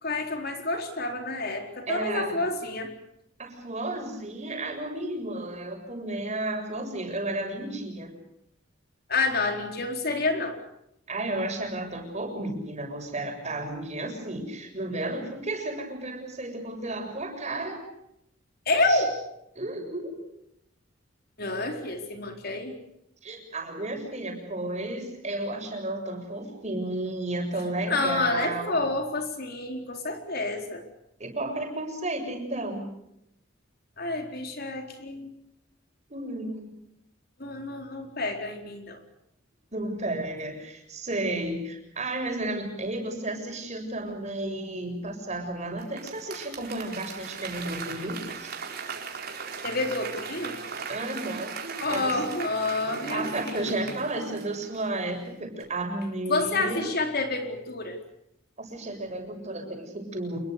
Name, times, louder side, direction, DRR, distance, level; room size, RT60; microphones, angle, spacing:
voice 1, 0.0-2.9 9.1-10.6 18.7-19.2 21.4-22.7 27.9-30.8 34.0-35.3 37.4-39.0 49.6-50.6 51.8-53.9 56.3-58.0, left 2 dB, 55° left, 4 dB, 4.4 m, -29 dB
voice 2, 1.9-2.4 3.4-8.1 11.1-17.8 18.9-19.0 19.6-20.2 23.2-28.8 31.2-32.9 36.1-36.7 39.7-48.6 50.9-51.5 51.9-52.2 53.1-56.9 58.6-60.4, right 2 dB, 35° right, 3 dB, 7.2 m, -33 dB
Applause / Crowd, 45.8-55.2 55.6-55.7, right 5 dB, 50° right, 4.5 m, -38 dB
28.0 x 22.0 x 6.9 m, 0.78 s
head